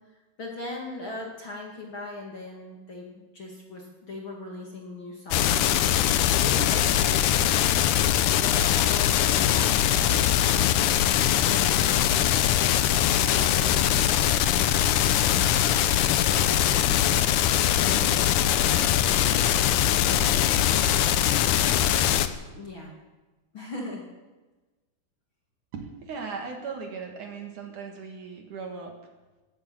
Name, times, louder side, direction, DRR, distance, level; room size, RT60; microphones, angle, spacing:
voice 1, 0.4-7.9 8.4-10.9 11.4-21.0 22.5-22.9 23.5-24.1, left 2 dB, 40° left, -1 dB, 2.3 m, -40 dB
sound 1, 5.3-22.3, left 11 dB, 80° left, 1.8 m, -22 dB
voice 2, 25.7-29.0, right 5 dB, 60° right, 3 dB, 2.9 m, -37 dB
13.5 x 12.0 x 8.7 m, 1.2 s
omnidirectional pair, 4.5 m